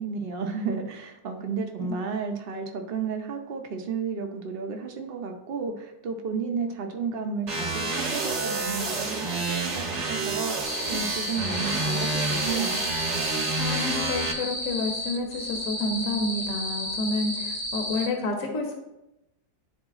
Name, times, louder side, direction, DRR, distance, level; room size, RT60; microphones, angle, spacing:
voice 1, 0.0-12.8, right 5 dB, 75° right, 4 dB, 0.5 m, -33 dB
sound 1, 7.5-14.3, right 3 dB, 40° right, 1.0 m, -29 dB
sound 2, 10.6-18.1, left 1 dB, 80° left, 2.2 m, -32 dB
voice 2, 13.6-18.7, left 2 dB, 60° left, 2 dB, 1.1 m, -29 dB
11.5 x 3.8 x 2.4 m, 0.92 s
omnidirectional pair, 1.7 m